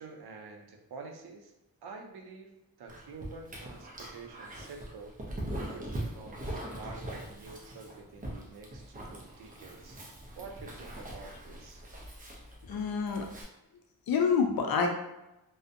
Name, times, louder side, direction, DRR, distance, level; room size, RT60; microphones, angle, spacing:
voice 1, 0.0-1.5 1.8-5.1 5.7-6.4 6.8-10.0 10.4-11.8, right 4 dB, 80° right, 2 dB, 0.5 m, -48 dB
Dog, 2.9-13.4, right 1 dB, 25° right, 0.4 m, -42 dB
voice 2, 12.6-13.3 14.1-14.9, left 6 dB, 70° left, 3 dB, 0.5 m, -27 dB
2.5 x 2.1 x 2.5 m, 0.93 s
wide cardioid pair, 155°, 38 cm